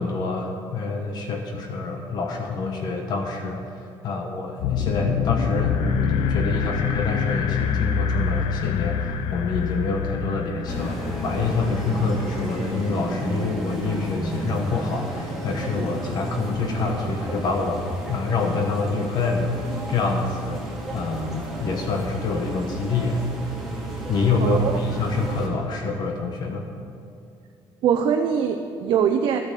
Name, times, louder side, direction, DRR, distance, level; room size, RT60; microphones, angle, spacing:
voice 1, 0.0-17.8 18.1-20.6 20.9-23.2 24.1-26.7, left 3 dB, 55° left, 3 dB, 1.3 m, -26 dB
sound 1, 4.6-12.7, left 7 dB, 85° left, 0.8 m, -26 dB
sound 2, 10.7-25.5, right 1 dB, ahead, 2.9 m, -32 dB
voice 2, 24.4-24.7 27.8-29.4, right 7 dB, 65° right, 4 dB, 0.7 m, -22 dB
13.5 x 8.7 x 6.8 m, 2.5 s
cardioid pair, 145°, 9 cm